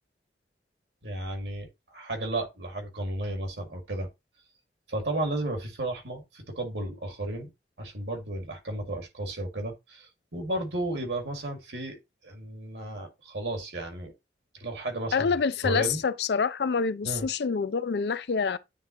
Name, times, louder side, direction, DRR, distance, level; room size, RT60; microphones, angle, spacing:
voice 1, 1.0-4.1 4.9-7.5 7.8-12.0 12.2-14.1 14.5-15.3 15.6-16.0 17.0-17.3, right 1 dB, 75° right, 2.1 m, -33 dB
voice 2, 15.1-18.6, left 5 dB, 65° left, 0.4 m, -27 dB
9.2 x 3.4 x 2.9 m
head